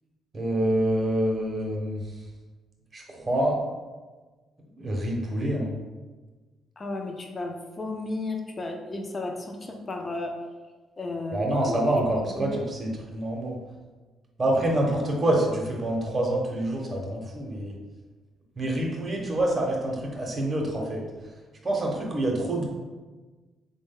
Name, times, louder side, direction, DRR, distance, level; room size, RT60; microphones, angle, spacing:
voice 1, 0.3-2.1 2.9-3.6 4.8-5.7 11.3-13.6 14.4-17.8 18.6-21.0 21.6-22.7, right 1 dB, 35° right, -1 dB, 0.7 m, -26 dB
voice 2, 6.8-10.3 11.0-11.8 12.4-12.5, left 2 dB, 30° left, 2 dB, 0.4 m, -33 dB
3.4 x 2.1 x 3.6 m, 1.3 s
cardioid pair, 90°, 0 cm